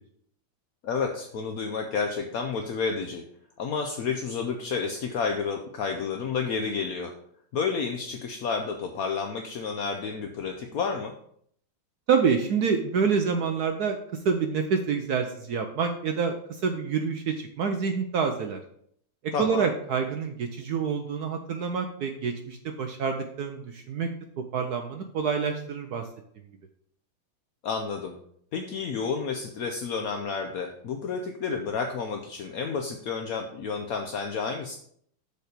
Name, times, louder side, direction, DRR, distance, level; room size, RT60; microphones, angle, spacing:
voice 1, 0.8-3.2 3.6-7.1 7.5-11.1 19.3-19.7 27.6-28.2 28.5-34.7, left 5 dB, 70° left, 3 dB, 0.8 m, -30 dB
voice 2, 12.1-14.0 14.2-18.6 19.4-24.1 24.4-26.0, right 6 dB, 65° right, 5 dB, 1.0 m, -27 dB
6.7 x 4.3 x 6.6 m, 0.66 s
omnidirectional pair, 2.3 m